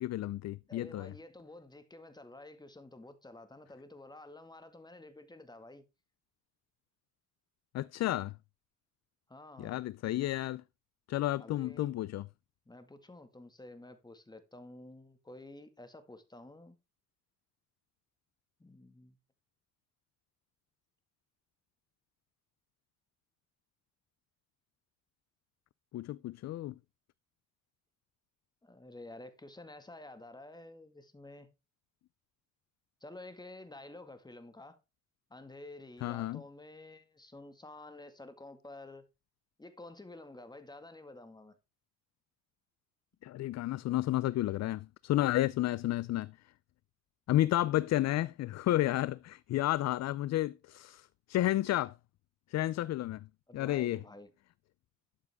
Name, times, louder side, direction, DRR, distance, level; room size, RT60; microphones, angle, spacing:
voice 1, 0.0-1.1 7.7-8.3 9.6-10.6 11.1-12.3 25.9-26.7 36.0-36.4 43.2-46.3 47.3-51.9 52.5-53.3 53.5-54.0, left 15 dB, 60° left, 0.5 m, -31 dB
voice 2, 0.7-5.8 9.3-9.8 11.4-11.9 12.7-16.8 18.6-19.2 28.6-31.5 33.0-34.8 35.3-39.1 39.6-41.6 53.5-54.3, left 2 dB, 15° left, 1.9 m, -50 dB
12.5 x 7.4 x 3.6 m
cardioid pair, 90°, 30 cm